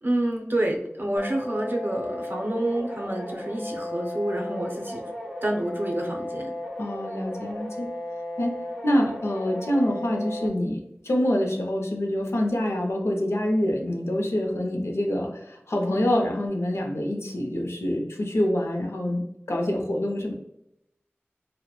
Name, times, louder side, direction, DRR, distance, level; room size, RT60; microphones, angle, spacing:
voice 1, 0.0-5.0 5.4-6.5, right 1 dB, 50° right, 0 dB, 0.5 m, -28 dB
sound 1, 1.2-10.5, left 1 dB, ahead, 0.8 m, -35 dB
voice 2, 6.8-7.9 8.4-8.6 8.8-19.2 19.5-20.4, left 1 dB, 80° left, 2 dB, 0.5 m, -26 dB
2.8 x 2.1 x 2.2 m, 0.81 s
wide cardioid pair, 45°, 5 cm